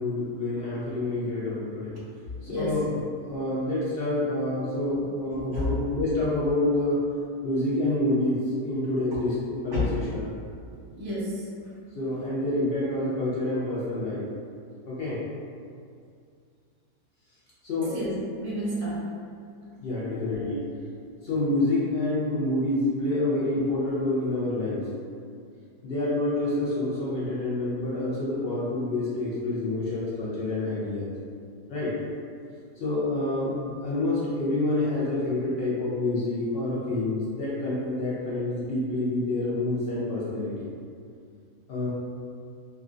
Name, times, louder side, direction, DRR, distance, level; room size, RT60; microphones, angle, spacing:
voice 1, 0.0-1.9 2.4-3.0 3.2-7.0 7.4-10.3 11.9-14.2 14.9-15.2 17.6-18.0 19.8-20.6 21.2-24.9 25.8-31.1 31.7-32.0 32.8-40.7 41.7-41.9, left 2 dB, 70° left, -8 dB, 0.5 m, -27 dB
voice 2, 2.4-2.8 5.5-5.7 9.7-10.0 11.0-11.4 17.8-19.0 20.0-20.6, equal, 60° right, -7 dB, 1.0 m, -31 dB
3.2 x 2.4 x 2.4 m, 2.3 s
omnidirectional pair, 1.6 m